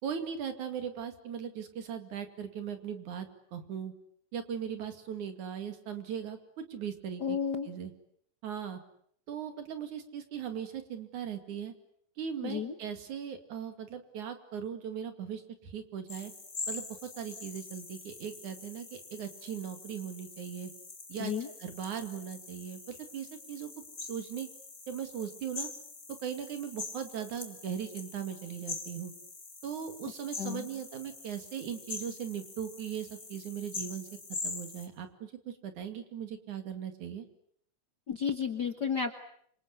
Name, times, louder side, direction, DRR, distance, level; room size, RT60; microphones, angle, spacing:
voice 1, 0.0-3.9 4.3-7.4 7.7-7.9 8.4-8.8 9.3-11.7 12.2-16.3 16.7-20.7 21.1-21.3 21.6-23.7 24.0-24.5 24.9-25.7 26.1-29.1 29.6-34.1 34.4-37.3, right 8 dB, 70° right, 8 dB, 3.7 m, -39 dB
voice 2, 7.2-7.7 12.4-12.7 21.2-21.5 30.4-30.7 38.1-39.2, left 6 dB, 50° left, 7 dB, 1.3 m, -32 dB
sound 1, 16.1-34.9, left 3 dB, 25° left, 3.4 m, -44 dB
27.5 x 25.5 x 8.3 m, 0.66 s
omnidirectional pair, 3.7 m